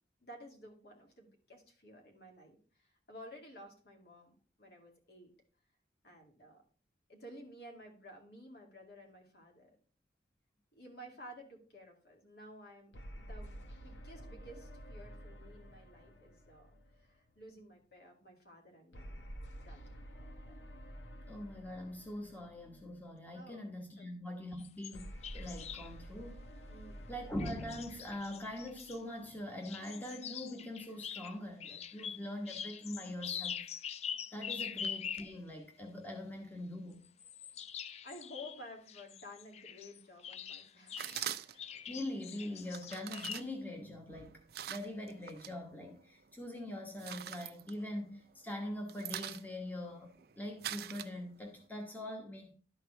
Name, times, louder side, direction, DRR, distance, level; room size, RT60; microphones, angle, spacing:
voice 1, 0.2-5.3 6.0-6.6 7.1-9.8 10.7-19.3 19.5-19.8 23.3-23.7 24.0-24.1 26.6-27.2 34.6-34.7 38.0-41.4 41.8-42.0, equal, 60° left, 2.3 m, -53 dB
sound 1, 12.9-17.5 18.9-23.3 24.9-29.5, equal, 85° left, 1.3 m, -50 dB
voice 2, 21.3-26.4 27.1-33.6 34.3-37.1 41.9-52.5, left 1 dB, 10° left, 1.1 m, -43 dB
sound 2, 24.6-25.9 27.4-29.0 29.6-35.4 37.0-41.3 41.6-43.4, left 8 dB, 35° left, 0.3 m, -44 dB
sound 3, 41.0-41.8 42.6-45.5 45.9-46.5 46.8-48.3 48.6-51.6, right 10 dB, 55° right, 0.5 m, -44 dB
11.5 x 4.6 x 4.7 m
head